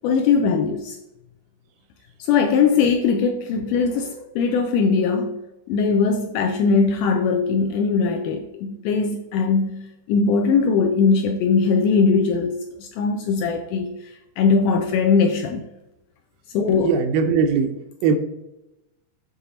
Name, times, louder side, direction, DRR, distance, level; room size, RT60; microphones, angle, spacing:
voice 1, 0.0-1.0 2.2-5.4 5.7-15.7 16.5-16.9, left 5 dB, 80° left, 5 dB, 1.8 m, -20 dB
voice 2, 16.7-18.2, right 6 dB, 80° right, 7 dB, 2.1 m, -21 dB
7.9 x 3.8 x 4.0 m, 0.91 s
omnidirectional pair, 4.1 m